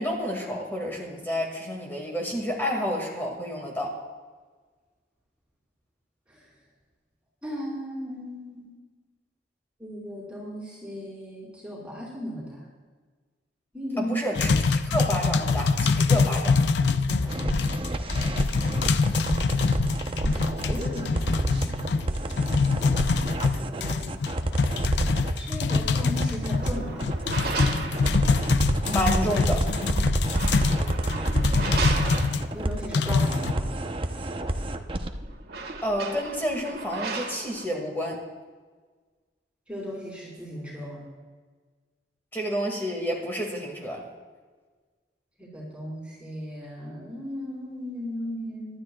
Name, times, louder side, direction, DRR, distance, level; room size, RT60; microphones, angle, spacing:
voice 1, 0.0-3.9 14.0-16.6 28.9-29.6 35.8-38.2 42.3-44.0, equal, 15° left, -1 dB, 2.0 m, -29 dB
voice 2, 7.4-8.7 9.8-12.6 13.7-14.2 17.1-17.8 20.1-21.8 22.2-22.5 23.5-24.2 25.4-27.1 32.5-33.7 39.7-41.0 45.4-48.8, equal, 5° right, -7 dB, 4.7 m, -36 dB
sound 1, 14.4-32.4 32.9-33.5, left 4 dB, 70° left, 0.6 m, -25 dB
sound 2, 17.3-35.1, right 1 dB, 30° right, 0.8 m, -29 dB
sound 3, 26.4-29.0 30.1-32.8 34.8-34.9 35.1-37.7, right 3 dB, 65° right, 1.7 m, -35 dB
24.5 x 12.5 x 2.3 m, 1.4 s
head